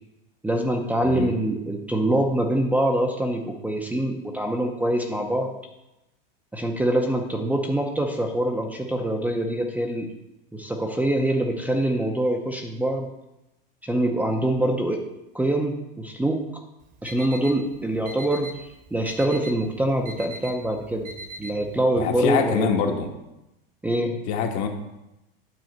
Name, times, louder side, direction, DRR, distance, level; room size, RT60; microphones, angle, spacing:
voice 1, 0.4-5.5 6.5-10.1 10.5-13.1 13.8-15.0 15.3-16.4 17.0-18.5 18.9-21.1 21.4-22.9 23.8-24.2, right 1 dB, 5° right, 2 dB, 0.7 m, -24 dB
voice 2, 1.0-1.3 21.9-23.1 24.3-24.7, left 7 dB, 50° left, 3 dB, 1.4 m, -24 dB
Alarm, 16.8-21.8, right 1 dB, 25° right, 1.1 m, -41 dB
9.3 x 3.9 x 6.6 m, 0.93 s
supercardioid pair, 125°, 29 cm